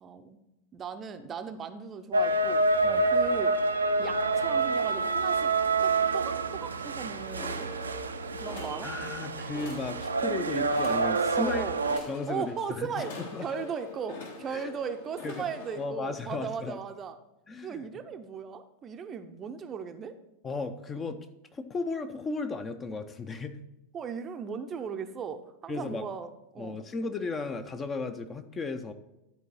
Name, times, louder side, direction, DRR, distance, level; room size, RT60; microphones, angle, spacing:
voice 1, 0.0-0.4 0.7-2.6 3.1-3.6 4.0-5.5 5.8-7.7 8.3-8.9 11.3-11.8 12.3-13.1 13.4-17.2 17.6-20.1 23.9-26.8, right 6 dB, 25° right, 8 dB, 0.6 m, -37 dB
sound 1, 2.1-12.0, right 3 dB, 75° right, 0.5 m, -27 dB
sound 2, 7.2-15.9, left 3 dB, 55° left, 1.7 m, -44 dB
voice 2, 8.8-11.6 12.1-13.5 14.5-14.7 15.2-15.4 15.8-16.8 17.5-17.8 20.4-21.2 21.5-23.6 25.7-26.0 26.6-28.9, left 3 dB, 20° left, 9 dB, 0.7 m, -35 dB
11.0 x 4.6 x 6.1 m, 0.93 s
figure-of-eight pair, 90°, 0 cm